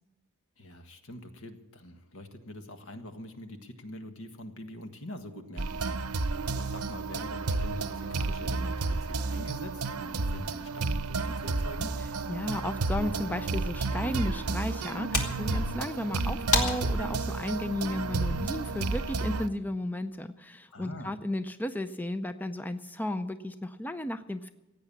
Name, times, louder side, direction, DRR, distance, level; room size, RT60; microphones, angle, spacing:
voice 1, 0.6-11.9 20.7-21.1, left 1 dB, 70° left, 6 dB, 1.6 m, -45 dB
sound 1, 5.6-19.5, right 3 dB, 80° right, 0.8 m, -31 dB
voice 2, 12.3-24.5, left 1 dB, 10° left, 10 dB, 0.4 m, -34 dB
sound 2, 14.9-19.0, left 3 dB, 90° left, 2.5 m, -35 dB
16.5 x 9.1 x 8.5 m, 1.0 s
head